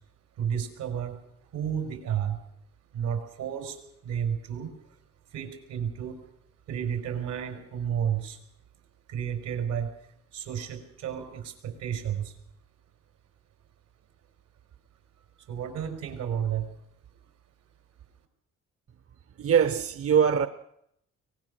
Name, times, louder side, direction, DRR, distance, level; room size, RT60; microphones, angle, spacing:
voice 1, 0.4-2.4 2.9-4.7 5.3-6.2 6.7-8.4 9.1-12.4 15.4-16.8 17.1-17.2, right 8 dB, 85° right, 4.6 m, -32 dB
voice 2, 19.4-20.5, right 7 dB, 50° right, 1.0 m, -22 dB
23.5 x 19.0 x 6.5 m
cardioid pair, 90°, 30 cm